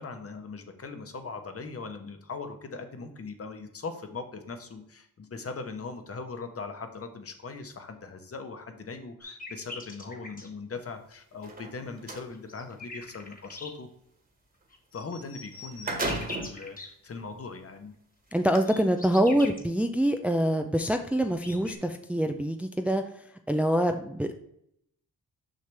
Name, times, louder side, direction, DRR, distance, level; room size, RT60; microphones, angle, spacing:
voice 1, 0.0-13.9 14.9-17.9, left 4 dB, 45° left, 7 dB, 1.1 m, -40 dB
sound 1, 9.2-10.5 12.3-13.7 14.7-16.9 18.3-19.6 20.8-20.9 21.1-21.8, left 2 dB, 25° left, 1.4 m, -42 dB
sound 2, 11.3-12.3 15.1-15.2 15.5-16.6 17.3-17.4 18.4-18.6, right 2 dB, 25° right, 1.6 m, -34 dB
voice 2, 18.3-23.0 23.5-24.3, equal, 5° right, 6 dB, 0.5 m, -25 dB
6.4 x 5.8 x 3.4 m, 0.73 s
cardioid pair, 95°, 33 cm